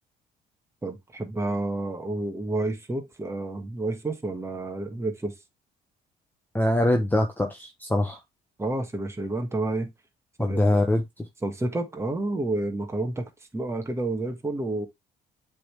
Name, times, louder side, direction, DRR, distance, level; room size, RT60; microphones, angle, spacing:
voice 1, 0.8-5.3 8.6-9.9 10.4-10.6 11.4-14.9, right 2 dB, 15° right, 1.5 m, -30 dB
voice 2, 6.5-8.2 10.4-11.2, left 1 dB, 10° left, 1.1 m, -23 dB
7.6 x 3.7 x 3.3 m
cardioid pair, 100°, 18 cm